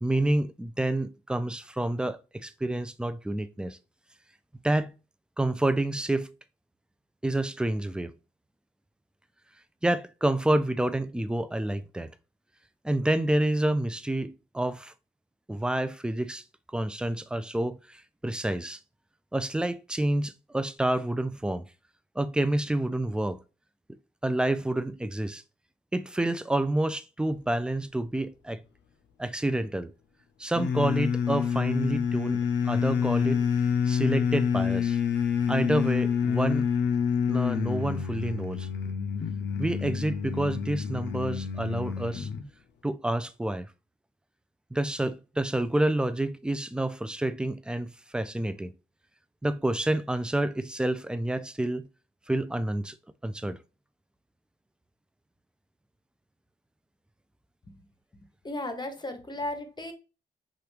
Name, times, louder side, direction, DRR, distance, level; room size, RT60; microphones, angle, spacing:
voice 1, 0.0-3.8 4.6-4.9 5.4-6.3 7.2-8.1 9.8-12.1 12.8-14.9 15.5-16.4 16.7-18.8 19.3-21.7 22.2-23.4 24.2-25.4 25.9-28.6 29.2-29.9 30.4-33.4 33.9-35.0 35.5-36.7 37.3-38.7 39.6-42.3 42.8-43.7 44.7-48.7 49.4-51.9 52.3-53.0 53.2-53.6, right 1 dB, 5° right, 0.4 m, -28 dB
sound 1, 30.5-42.5, left 7 dB, 80° left, 0.5 m, -27 dB
voice 2, 58.4-59.9, left 1 dB, 25° left, 0.9 m, -35 dB
3.0 x 2.4 x 3.3 m
supercardioid pair, 45°, 18 cm